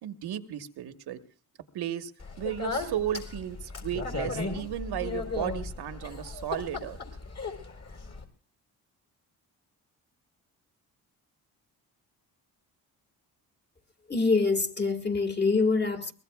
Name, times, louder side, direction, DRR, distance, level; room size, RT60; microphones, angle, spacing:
voice 1, 0.0-1.2 1.7-2.1 2.4-7.0, right 10 dB, 75° right, 1.3 m, -34 dB
Speech, 2.2-8.2, left 3 dB, 40° left, 4.0 m, -36 dB
voice 2, 14.1-16.1, left 4 dB, 25° left, 2.0 m, -25 dB
22.5 x 19.5 x 2.3 m
cardioid pair, 70°, 39 cm